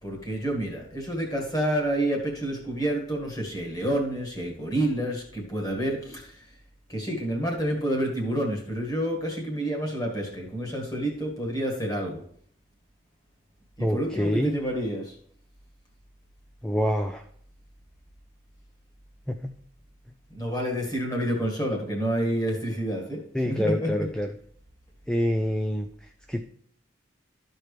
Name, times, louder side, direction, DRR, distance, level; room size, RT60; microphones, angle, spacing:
voice 1, 0.0-6.5 6.9-12.2 13.8-15.2 20.3-24.1, right 1 dB, 20° left, 0 dB, 1.8 m, -29 dB
voice 2, 13.8-14.6 16.6-17.2 19.3-19.5 23.3-24.3 25.1-26.4, equal, 5° left, 5 dB, 0.3 m, -27 dB
13.0 x 4.5 x 3.3 m, 0.62 s
head